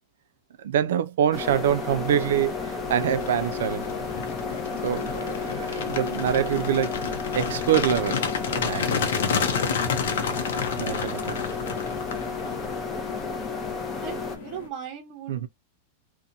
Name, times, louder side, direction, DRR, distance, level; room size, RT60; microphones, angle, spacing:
voice 1, 0.6-4.0 4.8-7.0 7.3-8.2 8.6-9.1 10.3-10.4 10.8-11.4 15.3-15.5, right 9 dB, 80° right, 0.4 m, -25 dB
sound 1, 1.3-14.4, left 4 dB, 15° left, 0.5 m, -32 dB
sound 2, 2.2-2.3 2.7-12.8, left 6 dB, 80° left, 0.6 m, -30 dB
sound 3, 2.6-14.7, left 6 dB, 55° left, 1.0 m, -43 dB
voice 2, 14.0-15.5, right 8 dB, 25° right, 0.6 m, -38 dB
2.7 x 2.1 x 2.5 m
supercardioid pair, 165°, 0 cm